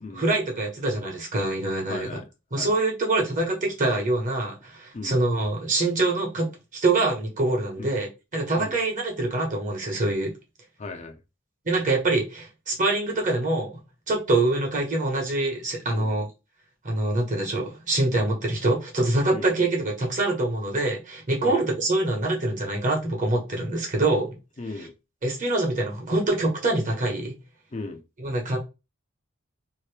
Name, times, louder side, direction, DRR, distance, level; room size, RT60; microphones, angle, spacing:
voice 1, 0.1-2.1 2.5-10.3 11.6-13.8 14.1-16.3 16.8-24.3 25.2-27.4 28.2-28.6, right 2 dB, 40° right, 1.2 m, -25 dB
voice 2, 1.9-2.3 2.6-2.7 4.9-5.2 7.8-8.0 8.6-8.8 10.8-11.2 15.9-16.1 19.3-19.5 21.4-21.6 24.6-24.9 27.7-28.0, left 3 dB, 35° left, 0.5 m, -36 dB
2.9 x 2.7 x 3.2 m
head